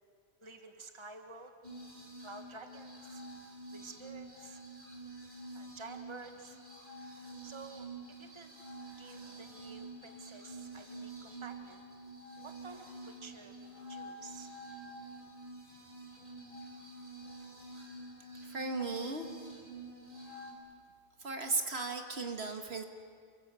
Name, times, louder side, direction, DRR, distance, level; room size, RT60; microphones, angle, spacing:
voice 1, 0.4-1.5 2.2-3.3 3.7-4.6 5.5-6.6 7.4-8.5 9.0-11.8 12.4-13.6 13.9-14.5, right 3 dB, 25° right, 6 dB, 1.6 m, -51 dB
sound 1, 1.6-20.5, right 2 dB, 45° right, 4.8 m, -48 dB
voice 2, 18.4-19.3 21.2-22.8, right 3 dB, 70° right, 5 dB, 2.1 m, -36 dB
29.0 x 23.0 x 7.6 m, 2.1 s
omnidirectional pair, 1.1 m